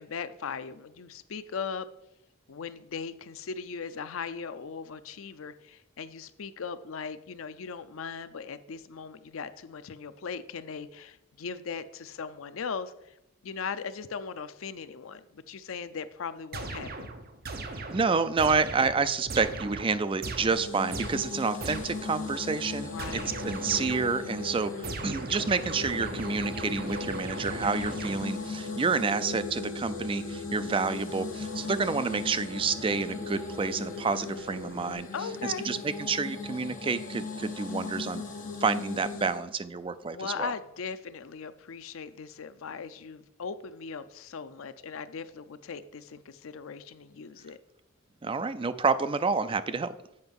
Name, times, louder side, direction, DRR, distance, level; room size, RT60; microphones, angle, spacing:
voice 1, 0.0-1.9 2.5-13.1 13.4-17.1 22.9-23.4 35.1-35.7 40.1-47.6, left 5 dB, 70° left, 13 dB, 0.5 m, -38 dB
sound 1, 16.5-22.2 23.0-24.3 24.8-28.5, right 3 dB, 45° right, 0.8 m, -39 dB
voice 2, 17.9-24.7 25.0-35.1 35.4-38.2 38.6-40.5 48.2-49.9, right 4 dB, 25° right, 13 dB, 0.4 m, -29 dB
sound 2, 20.5-39.4, left 4 dB, 40° left, 1.3 m, -39 dB
sound 3, 22.2-34.9, left 2 dB, 75° right, 1.5 m, -43 dB
7.9 x 5.5 x 5.3 m, 0.83 s
head